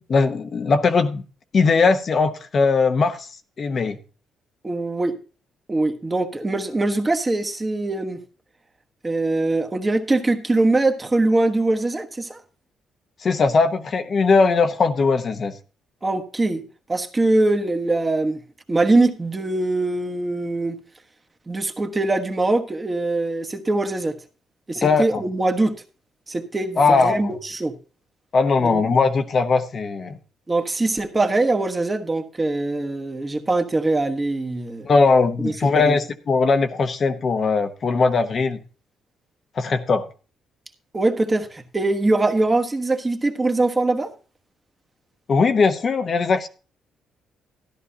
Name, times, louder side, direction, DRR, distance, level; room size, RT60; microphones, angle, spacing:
voice 1, 0.1-1.2 1.5-3.3 3.6-4.0 13.2-15.6 24.8-25.2 26.8-27.3 28.3-30.2 34.8-38.6 39.6-40.1 45.3-46.5, left 4 dB, 45° left, 1.0 m, -19 dB
voice 2, 4.6-5.2 5.7-8.2 9.0-12.4 16.0-16.6 16.9-18.4 18.7-20.8 21.5-24.2 24.7-25.7 26.3-27.7 28.6-28.8 30.5-34.9 35.4-36.0 40.9-44.1, right 2 dB, 20° right, 1.3 m, -22 dB
13.5 x 11.0 x 2.8 m
cardioid pair, 90°, 0 cm